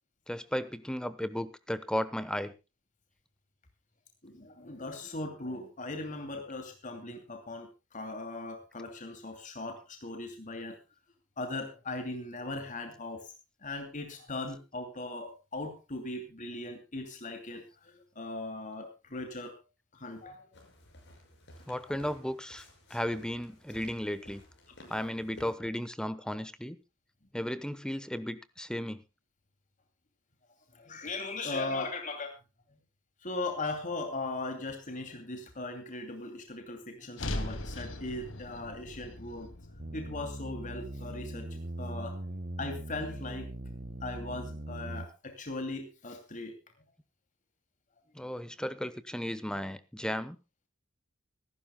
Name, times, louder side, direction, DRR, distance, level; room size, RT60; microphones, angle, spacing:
voice 1, 0.3-2.5 21.7-22.6 22.9-24.4 24.9-26.8 27.3-29.0 48.1-50.4, equal, 5° left, 14 dB, 1.0 m, -35 dB
voice 2, 4.2-10.8 11.4-13.3 13.6-19.6 19.9-20.6 21.8-21.9 24.8-24.9 30.7-32.4 32.7-32.8 33.2-39.5 39.9-42.3 42.6-43.5 44.0-46.6 48.2-48.3, left 2 dB, 40° left, 6 dB, 2.6 m, -39 dB
sound 1, 20.5-25.5, left 1 dB, 60° left, 6.1 m, -54 dB
sound 2, 37.2-41.4, left 1 dB, 80° left, 2.4 m, -40 dB
sound 3, 39.8-45.1, right 1 dB, 45° right, 1.4 m, -40 dB
25.0 x 12.5 x 2.2 m, 0.28 s
head